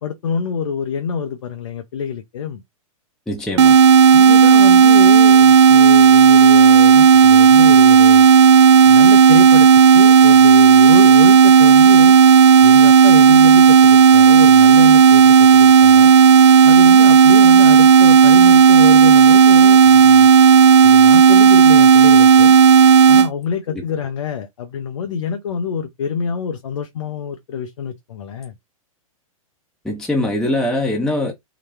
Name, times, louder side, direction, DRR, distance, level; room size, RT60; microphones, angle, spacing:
voice 1, 0.0-2.6 4.1-8.3 8.8-9.7 9.9-12.2 12.6-16.1 16.6-20.3 20.8-22.6 23.1-28.5, left 6 dB, 55° left, 0.7 m, -26 dB
voice 2, 3.3-3.8 23.7-23.8 29.8-31.3, left 1 dB, 5° left, 0.7 m, -22 dB
sound 1, 3.6-23.3, right 6 dB, 50° right, 0.4 m, -9 dB
3.9 x 2.2 x 4.4 m
figure-of-eight pair, 105°, 18 cm